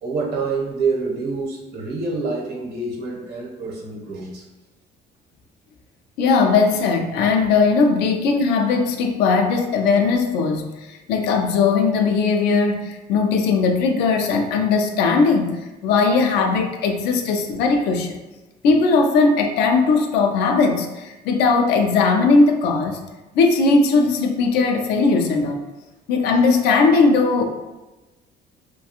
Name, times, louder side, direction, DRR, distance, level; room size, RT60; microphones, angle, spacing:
voice 1, 0.0-4.4, right 4 dB, 75° right, -1 dB, 0.8 m, -27 dB
voice 2, 6.2-10.7 11.1-15.6 15.8-18.2 18.6-20.9 21.3-23.0 23.4-25.6 26.1-27.4, left 4 dB, 85° left, 4 dB, 0.4 m, -18 dB
2.4 x 2.2 x 2.8 m, 1.1 s
cardioid pair, 110°, 17 cm